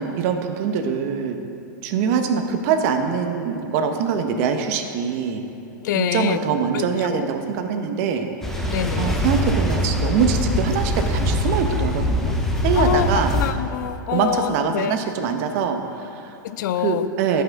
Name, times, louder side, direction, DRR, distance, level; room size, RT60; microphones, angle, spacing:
voice 1, 0.0-1.4 1.8-5.4 5.9-12.4 12.6-13.4 14.1-16.4 16.8-17.4, right 6 dB, 50° right, 6 dB, 0.8 m, -23 dB
voice 2, 5.8-6.4 6.7-7.3 8.7-9.3 12.8-13.1 13.3-15.0 16.4-17.1, left 11 dB, 70° left, 15 dB, 0.4 m, -25 dB
sound 1, 8.4-13.5, left 1 dB, 5° left, 0.7 m, -23 dB
14.0 x 5.7 x 3.6 m, 2.9 s
supercardioid pair, 145°, 10 cm